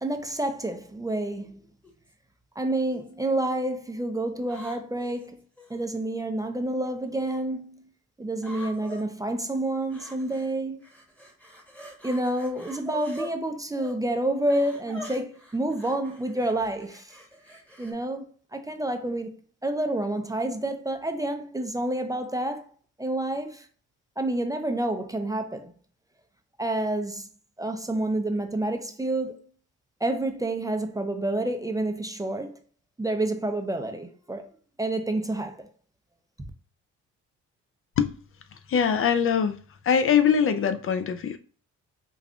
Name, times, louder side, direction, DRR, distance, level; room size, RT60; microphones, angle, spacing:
voice 1, 0.0-1.6 2.6-5.4 5.7-7.9 8.2-10.9 12.0-17.2 17.8-18.3 18.5-19.3 19.6-22.6 23.0-23.7 24.2-25.7 26.6-27.3 27.6-29.4 30.0-32.6 33.0-34.5 34.8-35.7, right 1 dB, 10° right, 0.4 m, -29 dB
sound 1, 1.8-2.1 2.9-3.4 4.5-5.8 6.8-7.4 8.4-9.0 9.9-10.5 10.8-13.3 13.7-13.9 14.5-17.9, equal, 5° left, 1.0 m, -44 dB
voice 2, 38.7-39.6 39.8-41.4, left 7 dB, 45° left, 0.4 m, -22 dB
5.1 x 2.3 x 2.3 m
cardioid pair, 90°, 30 cm